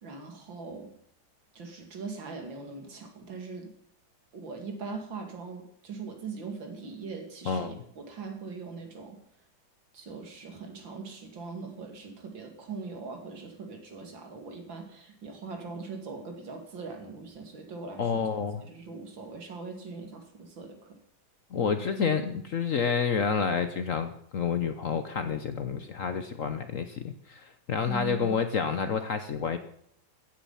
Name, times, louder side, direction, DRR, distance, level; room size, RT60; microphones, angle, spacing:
voice 1, 0.0-0.9 1.5-3.7 4.3-9.2 9.9-18.3 18.6-21.0 27.8-28.4, right 4 dB, 75° right, 5 dB, 3.0 m, -41 dB
voice 2, 7.5-7.8 18.0-18.6 21.5-29.6, left 6 dB, 55° left, 9 dB, 1.0 m, -29 dB
15.0 x 10.5 x 5.7 m, 0.67 s
omnidirectional pair, 2.1 m